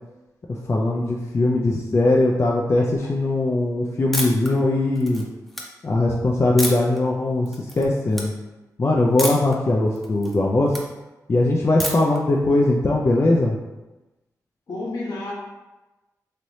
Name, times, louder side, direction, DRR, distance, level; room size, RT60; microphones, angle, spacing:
voice 1, 0.7-5.2 5.8-7.5 7.8-8.3 8.8-10.8 11.3-13.6, left 2 dB, 40° left, -2 dB, 0.4 m, -20 dB
voice 2, 2.7-3.1 14.7-15.3, left 2 dB, 70° left, -5 dB, 1.1 m, -31 dB
sound 1, 4.1-4.5 5.0-5.6 6.6-7.0 7.5-7.8 8.1-8.3 9.2-9.5 9.9-10.8 11.8-12.2, equal, 5° left, 0.7 m, -28 dB
3.1 x 2.9 x 2.7 m, 1.1 s
cardioid pair, 55°, 7 cm